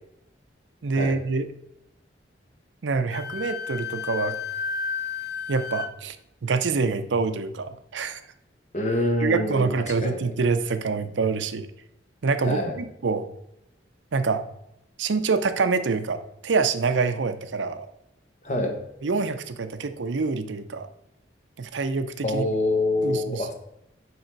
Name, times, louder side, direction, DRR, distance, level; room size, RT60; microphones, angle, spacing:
voice 1, 0.8-1.5 2.8-4.3 5.5-6.2 6.4-8.2 9.2-11.7 12.2-13.3 14.1-14.4 15.0-17.9 19.0-20.9 21.6-22.5 23.0-23.5, right 4 dB, 85° right, 10 dB, 0.6 m, -26 dB
Wind instrument woodwind instrument, 3.1-5.9, left 5 dB, 60° left, 0.5 m, -32 dB
voice 2, 8.7-10.3 12.4-12.8 18.4-18.8 22.2-23.5, left 1 dB, 40° left, 4 dB, 1.1 m, -26 dB
6.5 x 4.8 x 4.5 m, 0.81 s
head